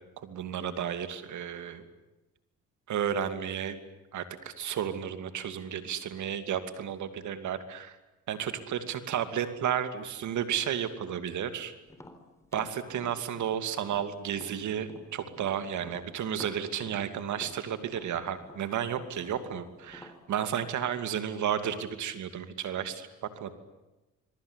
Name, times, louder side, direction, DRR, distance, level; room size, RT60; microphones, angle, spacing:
voice 1, 0.2-1.8 2.9-3.8 4.1-8.0 8.3-11.7 12.5-23.1 23.4-23.5, right 9 dB, 75° right, 10 dB, 2.7 m, -32 dB
Tap, 11.9-15.5 15.8-20.2, left 1 dB, 10° left, 3.9 m, -50 dB
26.5 x 22.5 x 9.9 m, 1.0 s
cardioid pair, 90°, 30 cm